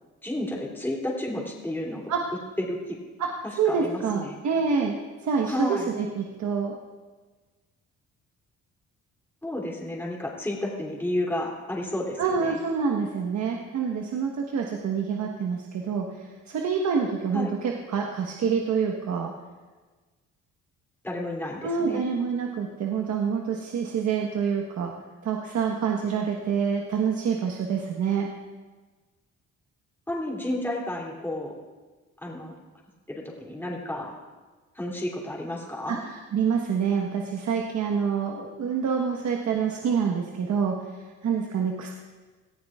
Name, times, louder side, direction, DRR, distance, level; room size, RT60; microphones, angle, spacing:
voice 1, 0.2-2.0 2.7-3.0 3.6-4.3 5.5-5.9 9.4-12.6 17.3-17.5 21.0-22.1 30.1-31.5 32.2-32.5 33.1-34.2 34.7-36.0, left 1 dB, 5° left, -3 dB, 2.9 m, -31 dB
voice 2, 3.6-4.9 5.2-6.7 12.2-19.3 21.6-24.9 25.2-28.3 35.9-41.9, right 6 dB, 65° right, 1 dB, 1.3 m, -27 dB
19.0 x 14.0 x 2.4 m, 1.3 s
cardioid pair, 90°, 30 cm